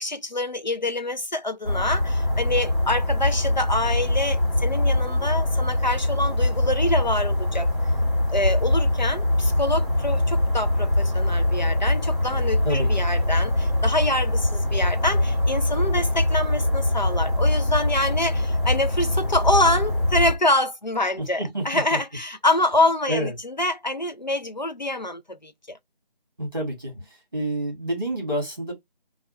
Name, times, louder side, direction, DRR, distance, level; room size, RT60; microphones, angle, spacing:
voice 1, 0.0-7.7 8.3-25.8, left 1 dB, 50° left, 0.4 m, -26 dB
sound 1, 1.6-20.4, left 1 dB, 30° left, 2.0 m, -23 dB
voice 2, 21.2-22.0 23.1-23.3 26.4-27.0 27.3-28.7, right 1 dB, 20° right, 1.7 m, -28 dB
3.1 x 2.3 x 3.1 m
figure-of-eight pair, 180°, 29 cm